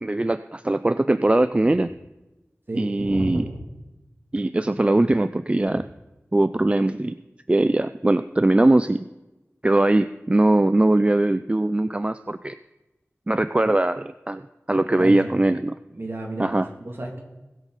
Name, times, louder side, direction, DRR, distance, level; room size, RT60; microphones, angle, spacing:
voice 1, 0.0-1.9 2.7-3.4 4.3-5.8 6.3-7.2 7.5-9.1 9.6-12.6 13.3-14.4 14.7-15.7 16.4-16.7, right 2 dB, 25° right, 12 dB, 0.4 m, -21 dB
voice 2, 2.7-3.6 5.6-5.8 15.0-15.3 15.9-17.2, right 1 dB, 50° right, 1 dB, 2.8 m, -32 dB
19.5 x 8.2 x 4.1 m, 1.0 s
wide cardioid pair, 60°, 5 cm